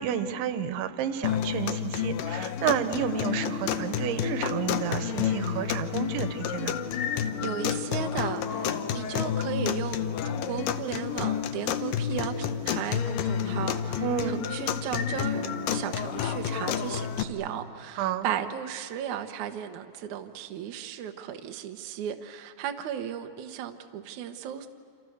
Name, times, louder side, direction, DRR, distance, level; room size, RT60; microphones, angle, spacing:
voice 1, 0.0-6.7 14.0-14.4 18.0-18.3, right 9 dB, 90° right, 9 dB, 3.5 m, -31 dB
sound 1, 1.2-17.2, left 9 dB, 85° left, 1.9 m, -30 dB
Keyboard (musical), 3.0-12.6 12.8-12.9 13.2-17.6, left 2 dB, 45° left, 6.9 m, -43 dB
voice 2, 7.4-24.7, right 9 dB, 70° right, 5 dB, 1.8 m, -35 dB
28.5 x 27.5 x 6.7 m, 2.6 s
omnidirectional pair, 5.2 m